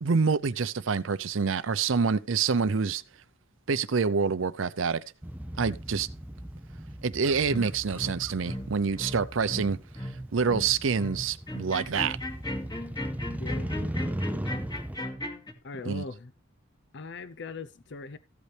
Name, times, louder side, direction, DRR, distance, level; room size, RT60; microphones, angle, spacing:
voice 1, 0.0-3.0 3.7-5.0 5.6-6.1 7.0-9.8 10.3-12.2 15.9-16.0, right 5 dB, 70° right, 0.6 m, -27 dB
Motorcycle, 5.2-15.0, right 1 dB, 10° right, 0.5 m, -38 dB
sound 1, 7.5-15.5, left 1 dB, 20° left, 2.2 m, -36 dB
voice 2, 13.4-13.9 15.6-16.3 16.9-18.2, left 4 dB, 60° left, 0.7 m, -40 dB
14.5 x 8.1 x 3.3 m
head